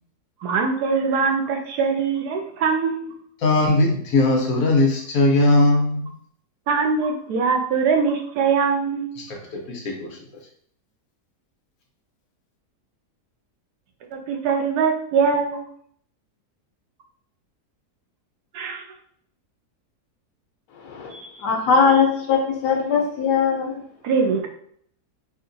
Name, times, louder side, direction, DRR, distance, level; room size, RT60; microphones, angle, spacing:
voice 1, 0.4-3.1 6.7-9.1 14.1-15.6 18.5-18.9 21.1-21.2 24.0-24.5, right 5 dB, 75° right, 4 dB, 1.2 m, -22 dB
voice 2, 3.4-6.2 9.2-10.2, left 2 dB, 60° left, 0 dB, 1.2 m, -19 dB
voice 3, 21.4-23.7, left 5 dB, 85° left, 1 dB, 1.3 m, -20 dB
4.9 x 2.8 x 2.6 m, 0.64 s
omnidirectional pair, 1.7 m